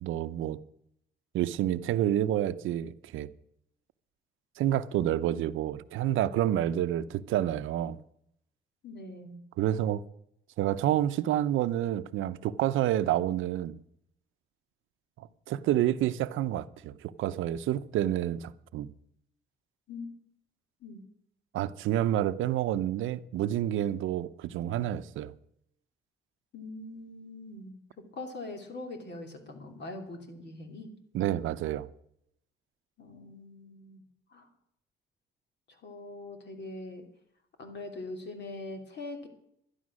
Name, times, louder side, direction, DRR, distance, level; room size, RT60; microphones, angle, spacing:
voice 1, 0.0-0.6 1.3-3.3 4.6-8.0 9.6-10.0 10.6-13.8 15.2-18.9 21.5-25.3 31.1-31.9, right 12 dB, 85° right, 0.7 m, -29 dB
voice 2, 8.8-9.4 19.9-20.1 20.8-21.0 26.5-27.8 28.1-30.9 33.0-34.0 34.3-34.5 35.8-37.0 37.6-39.3, left 2 dB, 60° left, 3.0 m, -42 dB
11.5 x 11.5 x 6.2 m
cardioid pair, 90°, 20 cm